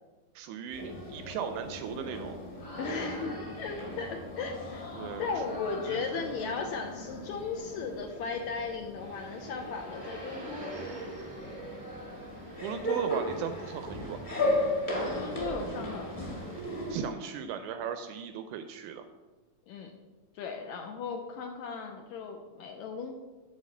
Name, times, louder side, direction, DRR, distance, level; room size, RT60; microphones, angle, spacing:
voice 1, 0.3-2.4 4.9-5.6 5.9-6.3 12.6-14.2 16.9-19.0, right 8 dB, 80° right, 8 dB, 1.8 m, -37 dB
sound 1, 0.7-17.1, left 1 dB, 20° left, 1.3 m, -36 dB
sound 2, 1.4-8.0, left 2 dB, 60° left, 1.6 m, -48 dB
voice 2, 2.8-4.9 5.2-10.7 14.9-16.3 19.7-19.9 20.3-23.1, left 5 dB, 75° left, 3 dB, 1.8 m, -36 dB
sound 3, 9.0-16.6, right 1 dB, 30° right, 0.6 m, -49 dB
8.7 x 4.7 x 7.2 m, 1.3 s
omnidirectional pair, 3.8 m